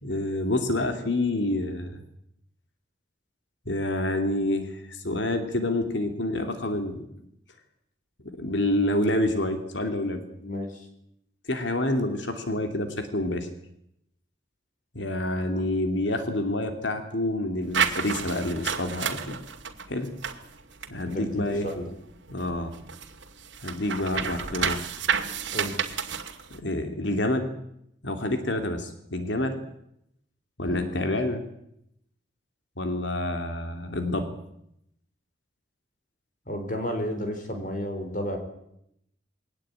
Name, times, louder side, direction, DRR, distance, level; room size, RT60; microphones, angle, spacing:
voice 1, 0.0-2.0 3.7-7.1 8.3-10.2 11.5-13.5 14.9-19.4 19.9-20.1 20.9-21.7 22.3-22.7 23.6-24.8 26.5-27.5 28.0-29.6 30.6-31.4 32.8-34.3, left 1 dB, 75° left, 7 dB, 2.7 m, -28 dB
voice 2, 10.4-10.9 15.4-15.6 21.1-21.9 25.5-25.8 30.6-31.0 36.5-38.4, equal, 45° left, 5 dB, 4.1 m, -32 dB
sound 1, 17.7-21.9 22.3-26.6, right 6 dB, 75° right, 2.3 m, -30 dB
22.0 x 18.5 x 8.8 m, 0.78 s
head